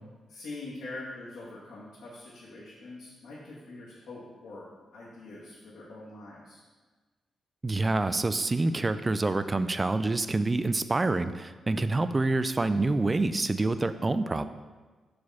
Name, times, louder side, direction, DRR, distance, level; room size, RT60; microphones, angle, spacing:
voice 1, 0.3-4.7 4.9-6.6, left 2 dB, 85° left, -8 dB, 1.6 m, -44 dB
voice 2, 7.6-14.5, right 2 dB, 25° right, 12 dB, 0.3 m, -27 dB
6.2 x 5.0 x 4.2 m, 1.3 s
cardioid pair, 100°, 0 cm